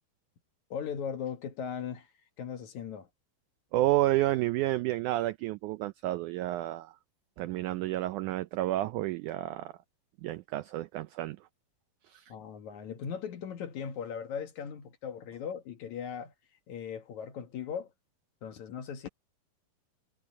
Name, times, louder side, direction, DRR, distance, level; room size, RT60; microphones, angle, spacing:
voice 1, 0.7-2.1 2.4-3.1 12.3-16.3 16.7-17.9 18.4-19.1, left 7 dB, 60° left, 2.5 m, -38 dB
voice 2, 3.7-6.9 7.4-9.7 10.2-11.4 12.1-12.3, right 15 dB, 85° right, 1.7 m, -30 dB
omnidirectional pair, 4.2 m